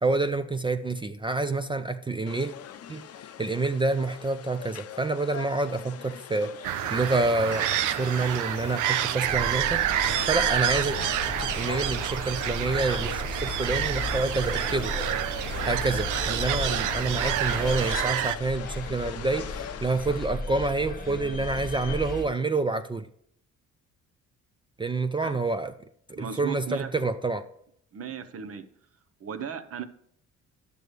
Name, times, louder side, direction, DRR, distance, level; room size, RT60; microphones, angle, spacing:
voice 1, 0.0-2.5 2.9-3.1 3.4-6.5 6.9-9.9 10.3-11.0 11.3-14.9 15.6-23.1 24.8-25.7 26.1-27.5, right 3 dB, 15° right, 9 dB, 0.4 m, -28 dB
sound 1, 2.3-20.3, left 9 dB, 55° left, 0.6 m, -42 dB
sound 2, 6.6-18.4, right 12 dB, 80° right, 0.5 m, -28 dB
sound 3, 9.3-22.3, left 3 dB, 30° left, 1.3 m, -35 dB
voice 2, 26.1-26.9 27.9-28.7 29.2-29.8, right 7 dB, 50° right, 11 dB, 0.8 m, -36 dB
10.5 x 6.8 x 3.2 m, 0.69 s
cardioid pair, 90°, 30 cm